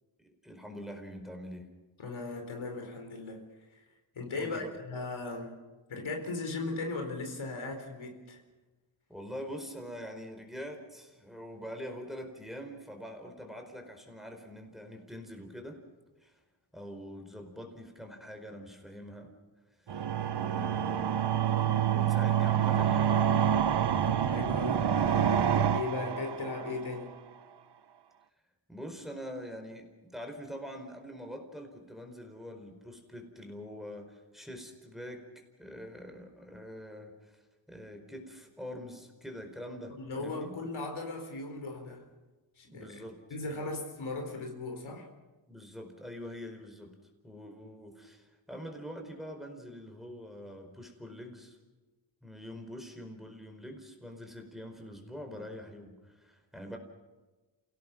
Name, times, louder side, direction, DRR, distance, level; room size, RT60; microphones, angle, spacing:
voice 1, 0.2-1.7 4.4-4.7 9.1-15.8 16.2-16.4 16.7-19.3 19.8-21.4 21.9-23.6 28.7-35.3 35.6-37.4 37.7-40.5 42.7-43.2 45.5-46.9 47.2-51.6 52.2-56.8, equal, ahead, 3 dB, 4.7 m, -44 dB
voice 2, 2.0-3.5 3.7-3.8 4.1-5.6 5.9-8.4 24.0-27.1 40.0-42.1 42.6-43.0 43.3-45.1, left 3 dB, 80° left, 3 dB, 4.4 m, -38 dB
sound 1, 19.9-26.9, right 9 dB, 55° right, 1.0 m, -27 dB
28.5 x 17.5 x 6.1 m, 1.2 s
cardioid pair, 80°, 47 cm